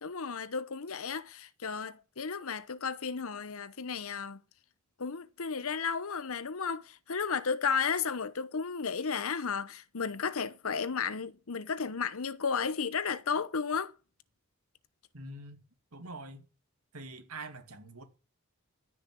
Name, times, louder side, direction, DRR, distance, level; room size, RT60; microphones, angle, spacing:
voice 1, 0.0-4.4 5.0-13.9, left 5 dB, 70° left, 0.9 m, -33 dB
voice 2, 15.1-15.6 15.9-16.4 16.9-18.0, right 2 dB, 75° right, 2.6 m, -44 dB
14.0 x 6.4 x 9.5 m
head